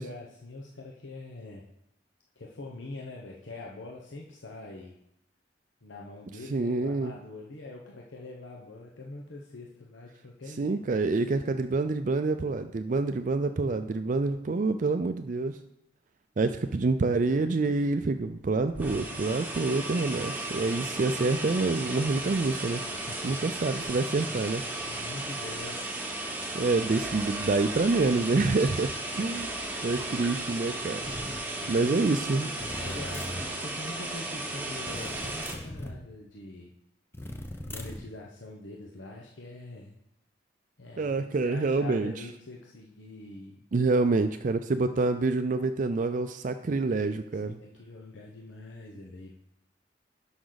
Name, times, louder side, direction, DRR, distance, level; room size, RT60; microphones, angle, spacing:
voice 1, 0.0-1.7 2.4-5.0 5.8-10.8 19.1-19.3 22.9-23.4 24.3-24.5 24.8-26.0 29.1-29.4 31.5-36.7 37.7-40.0 40.8-43.6 47.4-49.3, left 2 dB, 85° left, -1 dB, 1.0 m, -44 dB
voice 2, 6.5-7.1 10.6-15.6 16.4-22.8 23.2-24.6 26.5-29.5 29.8-31.0 31.7-32.5 41.0-42.1 43.7-47.6, right 3 dB, 45° right, 9 dB, 0.4 m, -27 dB
sound 1, 18.3-18.4 18.6-35.5, right 2 dB, 10° right, 1.2 m, -35 dB
sound 2, 31.0-31.5 32.6-33.5 34.9-36.0 37.1-38.1, left 1 dB, 15° left, 0.7 m, -39 dB
11.0 x 6.1 x 4.0 m, 0.82 s
head